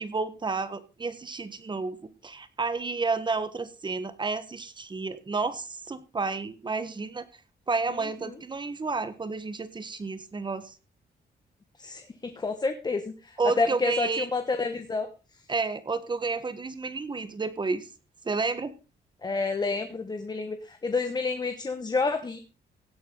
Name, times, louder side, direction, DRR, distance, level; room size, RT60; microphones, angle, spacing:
voice 1, 0.0-2.0 2.2-7.3 7.7-10.7 13.4-14.3 15.5-17.9 18.2-18.7, right 4 dB, 25° right, 12 dB, 1.5 m, -31 dB
voice 2, 11.8-15.1 19.2-22.4, left 4 dB, 25° left, 8 dB, 1.2 m, -29 dB
17.0 x 8.6 x 3.9 m, 0.33 s
cardioid pair, 130°, 17 cm